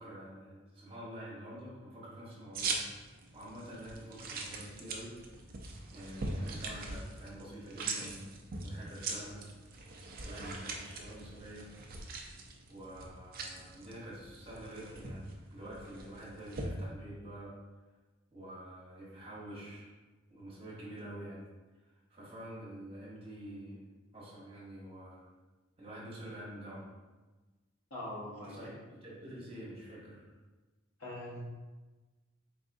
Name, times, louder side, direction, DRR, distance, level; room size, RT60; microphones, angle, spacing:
voice 1, 0.0-5.1 5.9-8.3 8.6-9.4 9.7-9.8 10.2-11.7 12.7-17.5 18.3-19.9 20.3-21.5 21.9-23.8 24.1-25.3 25.8-26.9 28.4-30.3, right 1 dB, 25° right, -6 dB, 1.1 m, -47 dB
sound 1, 2.6-16.7, right 3 dB, 45° right, 0.4 m, -42 dB
voice 2, 27.9-28.8 31.0-31.4, left 1 dB, 80° left, -4 dB, 1.1 m, -43 dB
4.0 x 3.5 x 2.6 m, 1.2 s
head